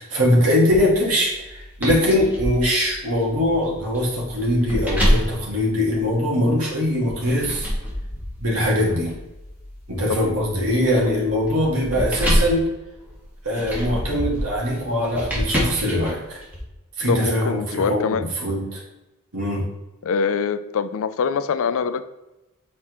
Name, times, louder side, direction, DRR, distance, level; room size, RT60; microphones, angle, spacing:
voice 1, 0.0-7.7 8.4-9.1 9.9-12.7 13.4-16.4 17.0-18.8 19.3-19.6, left 1 dB, 75° right, -3 dB, 2.0 m, -22 dB
sound 1, 0.7-6.5 7.1-16.6, equal, 10° right, 1.6 m, -27 dB
voice 2, 17.1-18.3 20.0-22.0, left 5 dB, 65° left, 12 dB, 0.4 m, -24 dB
7.5 x 4.2 x 3.1 m, 0.99 s
head